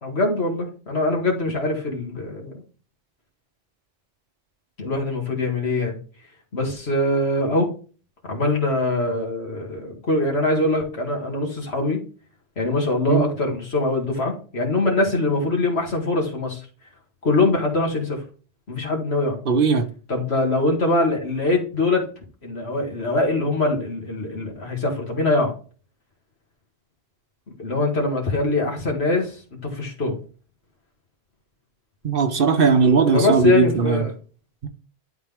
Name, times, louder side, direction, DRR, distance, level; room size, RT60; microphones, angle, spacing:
voice 1, 0.0-2.5 4.8-6.0 6.5-7.7 8.3-12.0 12.6-16.7 17.2-18.2 18.7-19.4 20.1-22.1 22.4-25.6 27.6-30.2 33.1-34.1, left 2 dB, 65° left, 2.3 m, -23 dB
voice 2, 19.5-19.9 32.0-34.0 34.6-34.7, right 5 dB, 55° right, 0.9 m, -18 dB
11.5 x 3.9 x 3.5 m
omnidirectional pair, 1.1 m